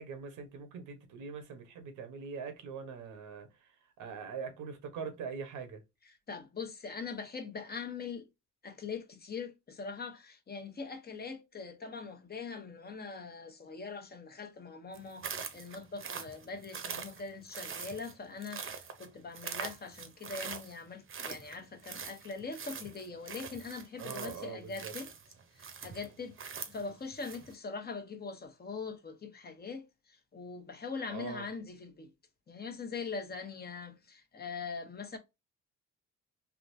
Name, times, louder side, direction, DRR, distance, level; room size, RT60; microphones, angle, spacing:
voice 1, 0.0-5.8 24.0-24.9 31.1-31.5, right 5 dB, 85° right, 0.9 m, -43 dB
voice 2, 6.3-8.3 8.6-25.1 25.6-32.1 32.5-35.2, left 4 dB, 30° left, 0.8 m, -42 dB
sound 1, 14.9-27.5, right 6 dB, 45° right, 0.7 m, -43 dB
3.5 x 2.4 x 2.5 m
cardioid pair, 90°, 30 cm